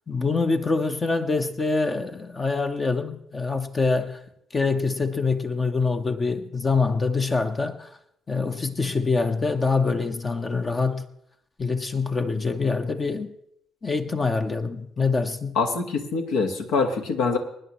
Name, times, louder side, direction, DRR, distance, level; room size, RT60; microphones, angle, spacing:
voice 1, 0.1-4.2 4.5-7.9 8.3-11.0 11.6-13.3 13.8-15.6, left 4 dB, 35° left, 0.9 m, -25 dB
voice 2, 15.5-17.4, left 4 dB, 70° left, 1.5 m, -24 dB
23.5 x 10.0 x 3.1 m
hypercardioid pair, 45°, 0 cm